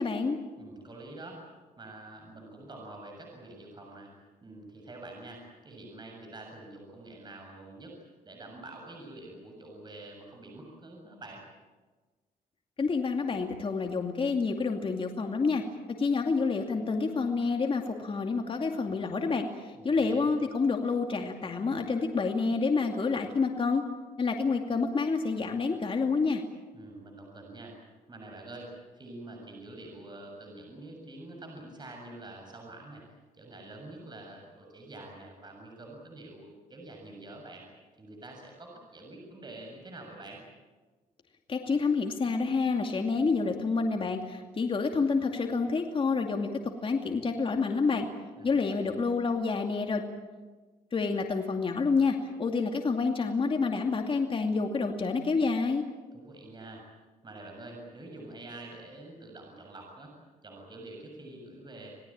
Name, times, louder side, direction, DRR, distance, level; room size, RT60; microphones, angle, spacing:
voice 1, 0.0-0.4 12.8-15.6 16.0-23.8 24.2-26.4 41.5-46.5 46.8-48.1 48.4-50.0 50.9-55.8, left 4 dB, 40° left, 3 dB, 2.5 m, -28 dB
voice 2, 0.6-1.4 1.8-4.1 4.4-7.9 8.2-11.4 19.7-20.3 26.7-27.8 28.1-33.0 33.3-37.6 38.0-40.4 48.4-49.0 56.1-56.8 57.2-60.1 60.4-62.0, right 2 dB, 30° right, 1 dB, 7.2 m, -46 dB
28.0 x 18.5 x 8.9 m, 1.3 s
cardioid pair, 100°, 15 cm